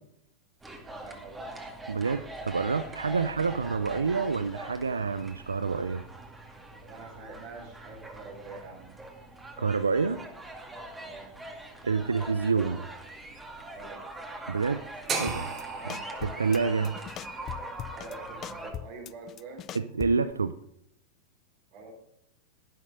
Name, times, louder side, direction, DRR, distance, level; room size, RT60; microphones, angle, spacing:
sound 1, 0.6-18.7, right 2 dB, 10° right, 2.3 m, -43 dB
voice 1, 0.8-1.5 6.8-8.9 10.9-11.3 13.7-14.0 15.7-16.0 17.9-19.7 21.7-21.9, right 3 dB, 55° right, 0 dB, 4.2 m, -46 dB
voice 2, 1.9-6.0 9.6-10.2 11.8-12.9 14.5-14.8 15.2-15.5 16.2-17.0 19.7-20.6, right 4 dB, 90° right, 13 dB, 0.5 m, -28 dB
sound 2, 15.1-19.2, right 4 dB, 30° right, 2.9 m, -37 dB
sound 3, 15.3-15.6 15.9-16.6 16.8-18.1 18.4-20.3, left 11 dB, 35° left, 0.5 m, -40 dB
11.0 x 10.5 x 5.2 m, 0.76 s
hypercardioid pair, 95°, 0 cm